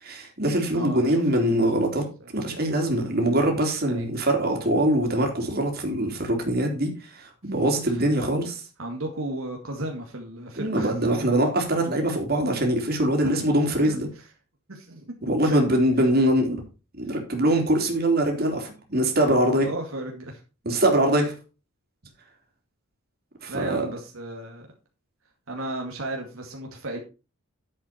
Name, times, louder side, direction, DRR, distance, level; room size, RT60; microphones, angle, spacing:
voice 1, 0.0-2.0 2.3-8.6 10.6-14.1 15.2-16.6 17.0-19.7 20.6-21.3 23.4-23.9, right 1 dB, 50° right, 2 dB, 3.3 m, -23 dB
voice 2, 0.7-1.5 3.9-4.1 7.9-8.0 8.8-11.1 13.2-13.5 13.8-14.3 14.7-15.6 19.5-20.4 23.5-24.7 25.5-27.0, right 1 dB, 75° right, 1 dB, 2.2 m, -35 dB
11.0 x 7.8 x 4.4 m, 0.31 s
head